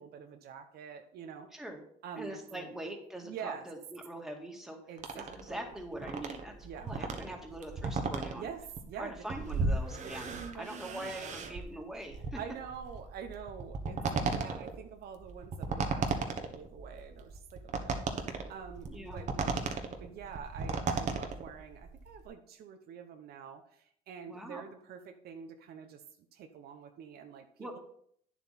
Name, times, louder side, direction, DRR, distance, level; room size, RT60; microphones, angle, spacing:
voice 1, 0.0-1.5 2.0-2.7 3.2-3.7 4.9-5.7 6.6-6.9 8.4-9.1 10.0-11.6 12.4-26.0 26.3-27.8, right 7 dB, 65° right, 6 dB, 1.0 m, -46 dB
voice 2, 2.1-4.8 5.1-8.5 9.0-12.4 13.9-14.2 18.9-19.2 24.3-24.7 27.6-27.8, right 1 dB, ahead, 1 dB, 2.1 m, -43 dB
sound 1, 5.0-22.3, right 4 dB, 45° right, 1.3 m, -36 dB
9.5 x 7.2 x 4.3 m, 0.66 s
cardioid pair, 110°, 17 cm